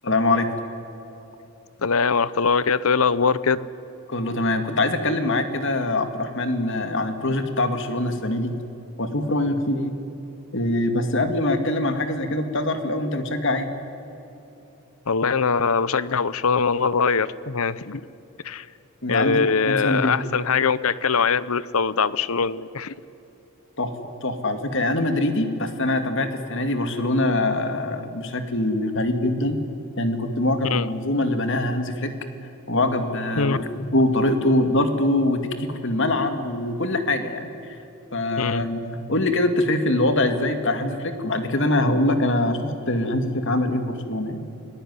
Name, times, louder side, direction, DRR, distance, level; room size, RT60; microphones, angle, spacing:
voice 1, 0.0-0.6 4.1-8.5 9.0-9.9 10.5-13.7 19.0-19.4 19.7-20.2 23.8-29.6 30.0-32.1 32.7-37.8 38.1-44.4, left 1 dB, 55° left, 7 dB, 2.4 m, -23 dB
voice 2, 1.8-3.7 15.1-18.0 18.4-18.7 19.1-22.9 30.6-30.9 33.3-33.6 38.4-38.6, left 5 dB, 70° left, 18 dB, 0.8 m, -22 dB
29.5 x 19.0 x 9.8 m, 3.0 s
head